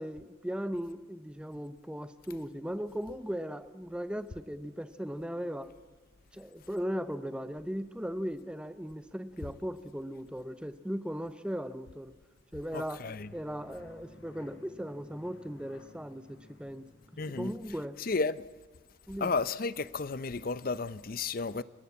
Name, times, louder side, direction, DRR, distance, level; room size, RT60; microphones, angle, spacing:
voice 1, 0.0-5.7 6.3-12.1 12.5-13.0 13.3-16.9 17.4-18.0 19.1-19.3, equal, 5° right, 0.7 m, -37 dB
voice 2, 12.7-13.3 17.2-17.5 18.0-18.4 19.2-21.6, left 4 dB, 45° left, 0.6 m, -32 dB
sound 1, 13.0-18.1, left 2 dB, 75° left, 1.9 m, -56 dB
29.5 x 13.0 x 8.4 m
head